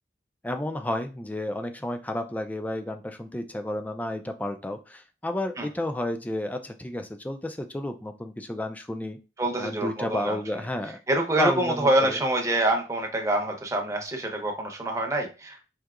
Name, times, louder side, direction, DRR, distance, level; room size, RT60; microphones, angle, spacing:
voice 1, 0.4-9.2 9.6-11.0 11.4-12.2, left 1 dB, 10° left, 7 dB, 0.3 m, -31 dB
voice 2, 9.4-10.4 11.1-15.6, right 1 dB, 20° right, 2 dB, 0.7 m, -26 dB
4.7 x 2.7 x 2.4 m, 0.32 s
head